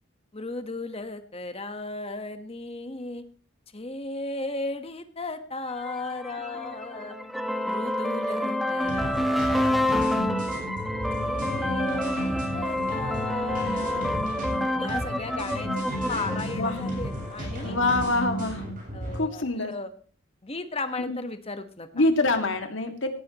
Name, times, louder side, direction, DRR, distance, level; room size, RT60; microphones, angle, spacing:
voice 1, 0.3-3.2 3.7-7.2 7.6-10.6 11.2-14.2 14.8-17.8 18.9-19.9 20.4-22.0, left 3 dB, 30° left, 8 dB, 1.3 m, -36 dB
sound 1, 5.8-17.6, left 1 dB, ahead, 1.1 m, -29 dB
sound 2, 8.8-19.2, equal, 45° right, 7.9 m, -34 dB
voice 2, 16.3-16.7 17.6-18.6 19.1-19.7 21.1-21.2 21.9-23.1, left 2 dB, 70° left, 5 dB, 2.1 m, -25 dB
17.0 x 15.0 x 3.0 m, 0.43 s
head